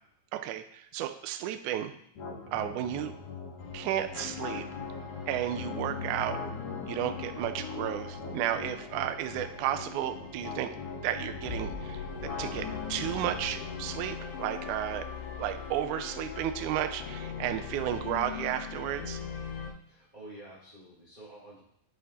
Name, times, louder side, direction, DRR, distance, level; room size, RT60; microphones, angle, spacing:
voice 1, 0.3-1.9 2.5-3.1 3.7-4.6 5.3-6.4 6.9-10.7 11.0-15.1 15.4-19.2, right 11 dB, 80° right, 8 dB, 1.8 m, -33 dB
sound 1, 2.2-18.2, left 5 dB, 60° left, 3.4 m, -42 dB
sound 2, 3.6-19.7, left 6 dB, 80° left, 2.8 m, -41 dB
voice 2, 19.9-21.6, right 1 dB, 20° right, -7 dB, 1.6 m, -49 dB
9.0 x 5.8 x 4.2 m, 0.70 s
omnidirectional pair, 4.1 m